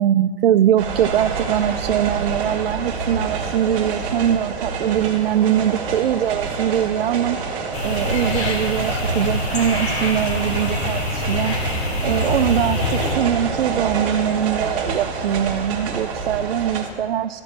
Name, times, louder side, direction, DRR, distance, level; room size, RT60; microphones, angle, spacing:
voice 1, 0.0-7.4 7.8-11.6 12.0-17.4, right 10 dB, 65° right, 8 dB, 0.4 m, -22 dB
sound 1, 0.8-16.9, right 5 dB, 15° right, 1.4 m, -28 dB
sound 2, 7.7-13.1, left 2 dB, 70° left, 3.2 m, -25 dB
14.0 x 5.2 x 8.7 m, 2.4 s
hypercardioid pair, 175°, 32 cm